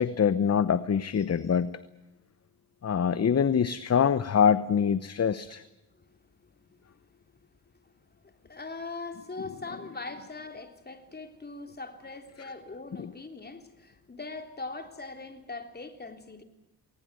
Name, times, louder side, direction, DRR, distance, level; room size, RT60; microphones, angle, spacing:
voice 1, 0.0-1.7 2.8-5.6 13.0-13.1, left 7 dB, 45° left, 15 dB, 1.0 m, -24 dB
voice 2, 8.4-16.4, left 3 dB, 25° left, 7 dB, 3.5 m, -41 dB
20.5 x 19.5 x 9.6 m, 0.99 s
cardioid pair, 85°, 36 cm